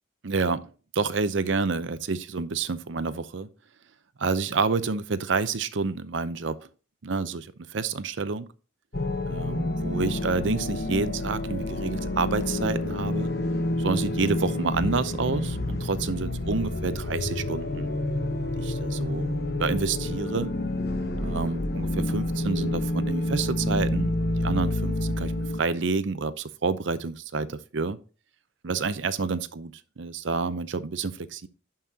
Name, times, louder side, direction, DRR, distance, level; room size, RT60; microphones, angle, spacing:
voice 1, 0.2-0.6 0.9-3.5 4.2-6.7 7.0-7.5 7.7-8.5 9.3-13.3 13.8-17.9 18.6-19.3 19.6-20.5 21.2-25.3 25.6-28.0 28.6-31.5, right 4 dB, 75° right, 0.6 m, -29 dB
sound 1, 8.9-25.6, left 1 dB, 50° left, 1.1 m, -28 dB
11.0 x 5.7 x 2.8 m
head